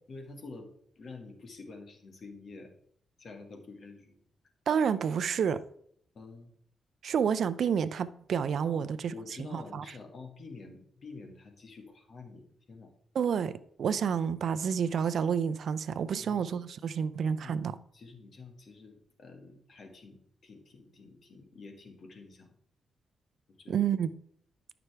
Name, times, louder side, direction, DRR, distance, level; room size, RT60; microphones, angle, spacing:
voice 1, 0.1-2.7 3.2-4.2 6.1-6.5 8.6-12.9 16.2-16.4 17.0-17.7 17.9-22.6 23.6-23.9, left 3 dB, 60° left, 1.9 m, -48 dB
voice 2, 4.7-5.6 7.0-9.1 9.5-9.8 13.1-17.8 23.7-24.1, right 7 dB, 70° right, 0.5 m, -29 dB
13.0 x 5.9 x 3.4 m
cardioid pair, 70°, 0 cm